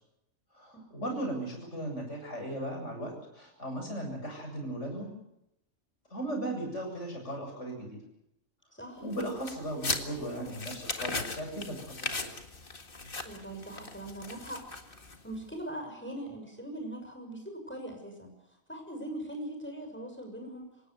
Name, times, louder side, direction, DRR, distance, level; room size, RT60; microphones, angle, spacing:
voice 1, 0.5-5.1 6.1-8.0 9.0-12.3, right 1 dB, 55° left, 3 dB, 8.0 m, -37 dB
sound 1, 9.1-15.4, left 3 dB, 40° left, 2.0 m, -38 dB
voice 2, 13.2-14.6 15.2-18.3 18.7-20.6, right 1 dB, 10° left, 3 dB, 6.5 m, -41 dB
27.0 x 17.5 x 8.0 m, 0.82 s
omnidirectional pair, 1.5 m